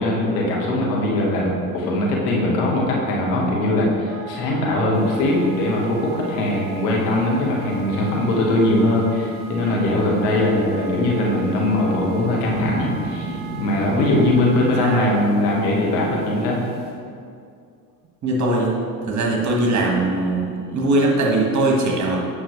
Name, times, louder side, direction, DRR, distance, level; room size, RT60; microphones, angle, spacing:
voice 1, 0.0-16.6, left 1 dB, 70° left, -2 dB, 1.5 m, -21 dB
Wind instrument woodwind instrument, 4.0-15.4, right 6 dB, 50° right, 1.1 m, -40 dB
sound 1, 4.9-16.9, right 1 dB, 20° left, 1.5 m, -36 dB
voice 2, 14.8-15.1 18.2-18.7 19.1-22.3, right 2 dB, 35° right, -1 dB, 1.6 m, -21 dB
8.5 x 5.8 x 3.2 m, 2.4 s
hypercardioid pair, 60°, 47 cm